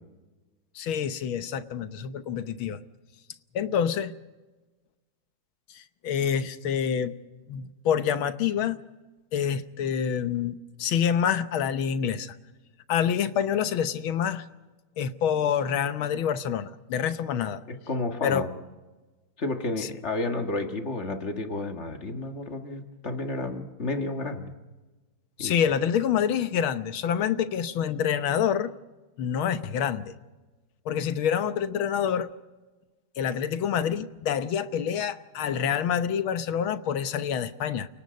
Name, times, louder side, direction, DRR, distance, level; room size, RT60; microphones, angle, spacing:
voice 1, 0.8-2.8 3.5-4.1 5.7-7.1 7.5-8.8 9.3-12.4 12.9-14.5 15.0-17.6 18.2-18.4 25.4-28.7 29.2-30.1 30.9-32.3 33.2-37.9, left 8 dB, 80° left, 11 dB, 1.8 m, -27 dB
voice 2, 17.7-18.5 19.4-24.5 25.4-25.5 25.8-25.9, left 2 dB, 35° left, 5 dB, 2.0 m, -31 dB
29.5 x 18.5 x 5.3 m, 1.2 s
omnidirectional pair, 2.2 m